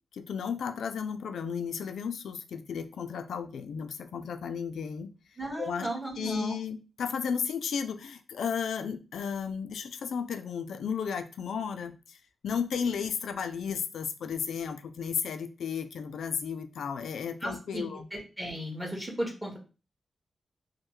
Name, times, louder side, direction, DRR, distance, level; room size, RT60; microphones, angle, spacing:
voice 1, 0.1-5.1 5.6-5.9 6.2-12.2 12.4-18.1, left 6 dB, 85° left, 9 dB, 0.3 m, -34 dB
voice 2, 5.4-6.6 17.4-19.6, right 1 dB, 10° right, -1 dB, 1.4 m, -35 dB
3.2 x 2.1 x 3.0 m, 0.32 s
cardioid pair, 55°, 0 cm